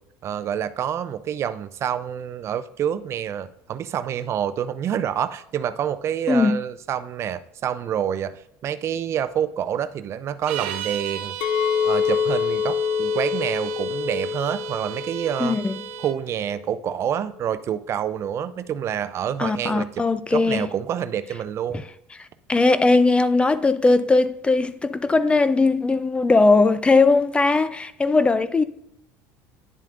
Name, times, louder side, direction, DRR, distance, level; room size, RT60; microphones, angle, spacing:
voice 1, 0.2-11.4 11.8-15.6 16.0-20.0 20.3-21.8, right 9 dB, 45° right, 0.5 m, -27 dB
voice 2, 6.3-6.6 15.4-15.8 19.4-20.7 22.5-28.6, left 3 dB, 15° left, 0.4 m, -19 dB
sound 1, 10.4-16.2, right 12 dB, 85° right, 0.7 m, -35 dB
Chink clink, 11.4-16.6, left 7 dB, 80° left, 0.4 m, -26 dB
10.0 x 7.4 x 2.5 m
supercardioid pair, 95°, 6 cm